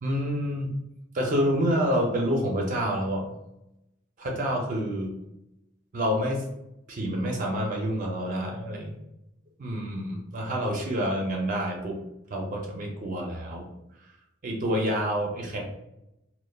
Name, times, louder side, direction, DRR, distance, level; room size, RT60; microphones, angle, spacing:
voice 1, 0.0-0.7 1.1-3.3 4.2-5.1 5.9-6.4 6.9-9.0 9.6-12.0 12.3-13.7 14.4-15.6, equal, 40° right, 0 dB, 0.4 m, -28 dB
3.1 x 2.0 x 2.2 m, 0.87 s
head